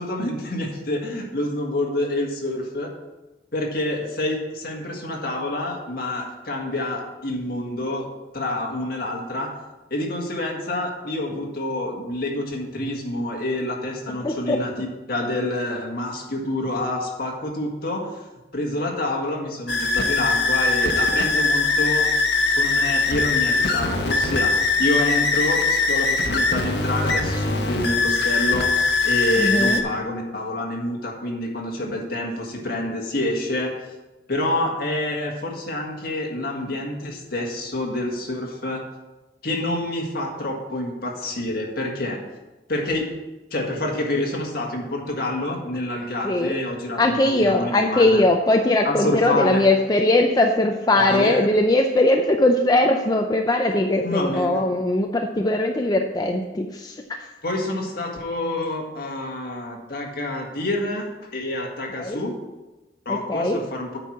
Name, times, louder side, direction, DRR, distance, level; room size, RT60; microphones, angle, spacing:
voice 1, 0.0-2.9 3.5-8.1 8.3-9.5 9.9-18.1 18.5-22.1 22.6-24.5 24.8-28.7 29.0-33.7 34.3-38.8 39.4-42.2 42.7-43.1 43.5-48.2 48.8-49.6 51.0-51.5 54.0-54.7 57.4-62.4 63.1-63.9, left 1 dB, 60° left, 0 dB, 1.8 m, -27 dB
voice 2, 14.1-14.6 29.4-29.8 46.2-46.5 47.0-57.3 62.0-62.2 63.1-63.6, left 2 dB, 25° left, 3 dB, 0.5 m, -20 dB
sound 1, 19.7-29.8, left 3 dB, 75° left, 1.2 m, -21 dB
8.8 x 4.6 x 7.4 m, 1.1 s
head